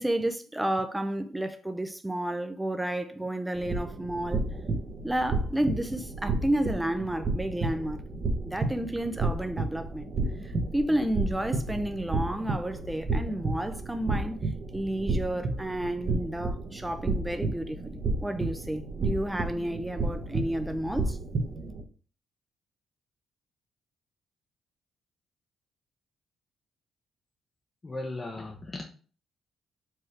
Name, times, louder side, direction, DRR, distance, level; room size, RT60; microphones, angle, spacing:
voice 1, 0.0-4.5 5.0-8.0 8.4-10.1 10.4-14.4 14.7-21.2, right 1 dB, 10° right, 0.4 m, -31 dB
sound 1, 3.5-21.8, right 3 dB, 45° right, 0.9 m, -32 dB
voice 2, 27.8-28.9, left 2 dB, 25° left, 0.7 m, -37 dB
4.5 x 3.2 x 3.2 m
cardioid pair, 90°, 0 cm